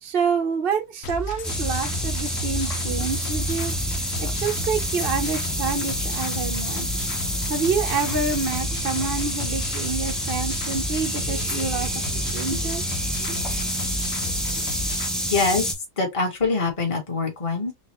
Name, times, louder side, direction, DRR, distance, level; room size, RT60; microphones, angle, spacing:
voice 1, 0.0-3.7 4.2-6.9 7.5-12.8, right 5 dB, 50° right, 0.7 m, -27 dB
sound 1, 1.0-15.1, left 2 dB, 55° left, 0.8 m, -33 dB
sound 2, 1.4-15.7, equal, ahead, 0.3 m, -28 dB
voice 2, 15.3-17.7, left 3 dB, 20° left, 1.3 m, -24 dB
4.4 x 2.4 x 3.0 m
omnidirectional pair, 1.7 m